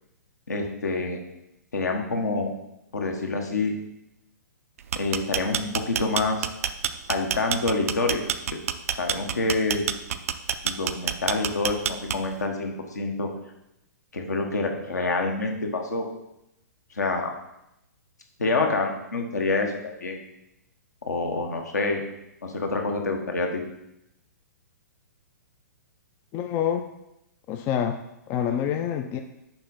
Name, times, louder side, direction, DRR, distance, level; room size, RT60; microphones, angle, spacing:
voice 1, 0.5-1.2 1.7-2.5 2.9-3.8 4.9-6.5 7.1-8.2 8.5-8.6 9.0-9.9 10.6-13.3 14.1-16.1 16.9-17.3 18.4-20.2 21.1-22.0 22.4-23.6, left 3 dB, 70° left, 3 dB, 1.2 m, -27 dB
sound 1, 4.8-12.4, right 9 dB, 55° right, 0.4 m, -28 dB
voice 2, 26.3-26.8 27.5-28.0 28.3-29.2, left 9 dB, 25° left, 6 dB, 0.4 m, -26 dB
6.7 x 4.9 x 4.0 m, 0.85 s
figure-of-eight pair, 115°, 9 cm